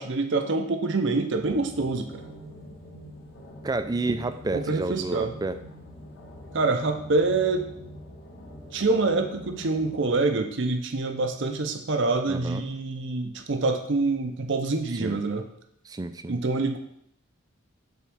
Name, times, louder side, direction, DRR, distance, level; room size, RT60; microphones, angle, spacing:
voice 1, 0.0-2.2 4.5-5.3 6.5-7.7 8.7-15.4 16.3-16.8, right 3 dB, 60° right, 5 dB, 0.7 m, -26 dB
sound 1, 1.4-10.4, equal, 50° left, 1.3 m, -44 dB
voice 2, 3.6-5.6 12.3-12.6 15.0-15.2 15.9-16.4, right 2 dB, 20° right, 9 dB, 0.4 m, -30 dB
6.9 x 3.7 x 6.1 m, 0.72 s
head